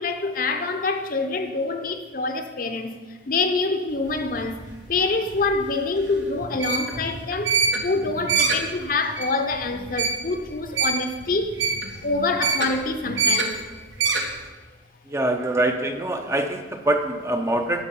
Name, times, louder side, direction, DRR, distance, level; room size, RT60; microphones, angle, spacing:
voice 1, 0.0-2.9 3.3-4.6 4.9-7.5 7.8-11.5 12.0-13.5, left 3 dB, 50° left, 0.8 m, -25 dB
sound 1, 3.9-14.4, right 4 dB, 85° right, 1.3 m, -26 dB
voice 2, 15.1-17.8, right 1 dB, 15° right, 0.6 m, -24 dB
11.5 x 4.6 x 7.0 m
head